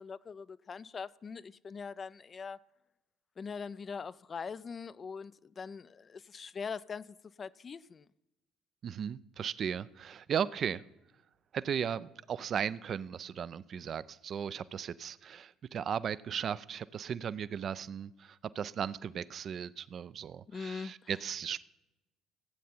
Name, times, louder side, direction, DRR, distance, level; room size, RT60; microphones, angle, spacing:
voice 1, 0.0-2.6 3.4-8.1 20.5-21.1, left 5 dB, 35° left, 0.3 m, -42 dB
voice 2, 8.8-10.8 11.5-21.6, right 8 dB, 45° right, 0.4 m, -36 dB
15.5 x 8.3 x 4.4 m
hypercardioid pair, 55°, 0 cm